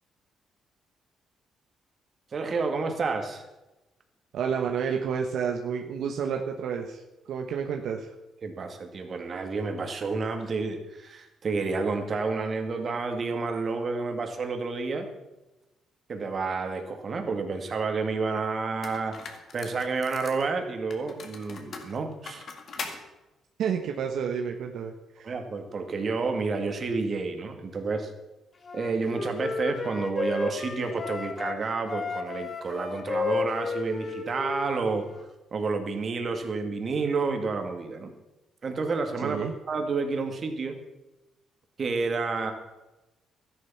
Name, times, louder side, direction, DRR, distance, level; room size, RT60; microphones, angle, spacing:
voice 1, 2.3-3.4 8.4-15.1 16.1-19.2 19.5-22.4 25.2-28.1 28.7-35.1 35.5-38.1 38.6-40.8 41.8-42.5, right 4 dB, 45° right, 5 dB, 2.2 m, -30 dB
voice 2, 4.3-7.0 7.3-8.1 23.6-25.3 39.2-39.5, right 7 dB, 75° right, 2 dB, 1.1 m, -30 dB
sound 1, 18.2-18.3 18.8-20.5 20.9-23.0, left 4 dB, 55° left, 2.2 m, -40 dB
Wind instrument woodwind instrument, 28.6-31.6 31.9-35.2, left 4 dB, 35° left, 1.4 m, -33 dB
13.0 x 10.5 x 5.8 m, 1.0 s
cardioid pair, 90°, 0 cm